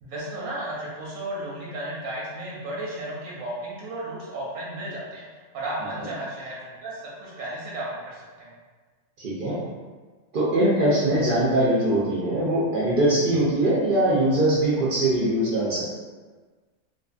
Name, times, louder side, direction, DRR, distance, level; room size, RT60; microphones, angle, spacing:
voice 1, 0.0-8.5, right 1 dB, 90° right, -5 dB, 1.0 m, -34 dB
voice 2, 9.2-9.6 10.3-15.9, right 1 dB, 65° right, -7 dB, 0.5 m, -22 dB
2.5 x 2.3 x 2.4 m, 1.4 s
omnidirectional pair, 1.4 m